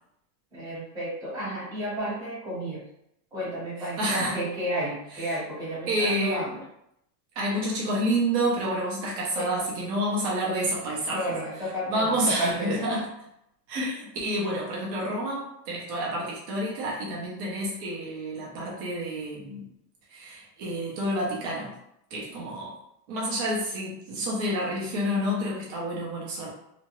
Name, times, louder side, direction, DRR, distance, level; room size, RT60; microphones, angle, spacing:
voice 1, 0.5-2.8 3.3-6.6 9.3-9.4 11.1-13.0 13.7-14.0, right 1 dB, 5° right, -11 dB, 0.9 m, -32 dB
voice 2, 4.0-4.4 5.2-5.4 5.9-6.5 7.4-11.2 11.9-13.0 13.7-13.9 14.2-19.7 20.1-21.7 22.1-22.7 23.1-26.5, right 1 dB, 25° right, -4 dB, 0.5 m, -29 dB
2.9 x 2.3 x 2.9 m, 0.78 s
supercardioid pair, 180°, 49 cm